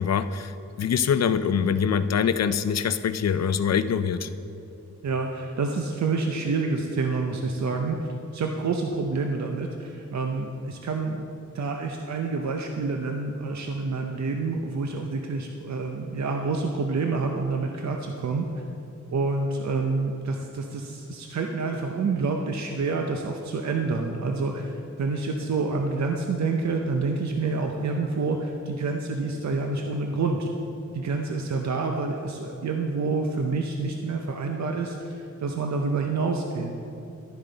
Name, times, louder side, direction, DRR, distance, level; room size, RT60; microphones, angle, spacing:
voice 1, 0.0-4.3, left 7 dB, 60° left, 13 dB, 0.4 m, -24 dB
voice 2, 5.0-11.3 11.5-18.5 19.1-30.5 30.9-36.7, right 3 dB, 65° right, 3 dB, 0.7 m, -28 dB
11.5 x 10.0 x 4.0 m, 2.7 s
wide cardioid pair, 160°, 30 cm